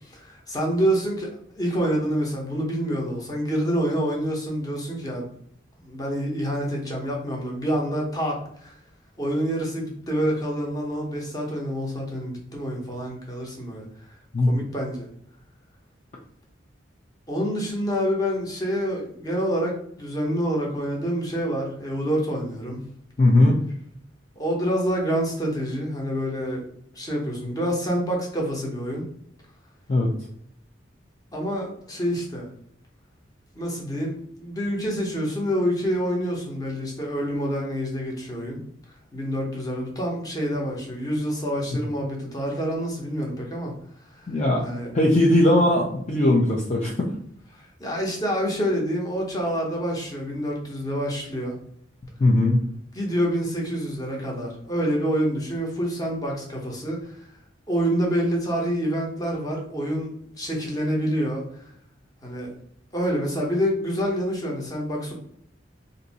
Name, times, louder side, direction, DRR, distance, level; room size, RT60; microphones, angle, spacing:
voice 1, 0.0-5.3 5.8-8.7 9.2-13.9 14.5-15.1 17.3-22.8 24.4-26.6 26.9-29.0 31.3-32.5 33.5-38.6 39.1-43.7 44.1-44.4 44.6-44.9 47.5-51.6 52.9-57.2 57.7-61.4 62.2-62.5 62.9-65.1, equal, 20° left, -1 dB, 0.8 m, -27 dB
voice 2, 23.2-23.6 29.9-30.1 41.7-41.8 44.3-44.6 44.9-47.1 52.2-52.6, left 1 dB, 35° left, -2 dB, 0.4 m, -19 dB
2.6 x 2.6 x 4.0 m, 0.68 s
head